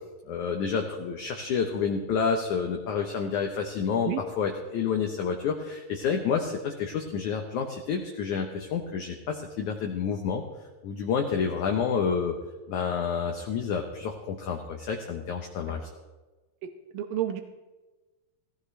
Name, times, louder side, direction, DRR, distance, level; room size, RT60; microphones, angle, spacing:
voice 1, 0.3-10.4 10.8-12.4 12.7-15.9, left 6 dB, 65° left, 2 dB, 2.1 m, -29 dB
voice 2, 16.6-17.4, right 11 dB, 70° right, 6 dB, 2.3 m, -31 dB
17.5 x 17.5 x 3.4 m, 1.2 s
omnidirectional pair, 4.5 m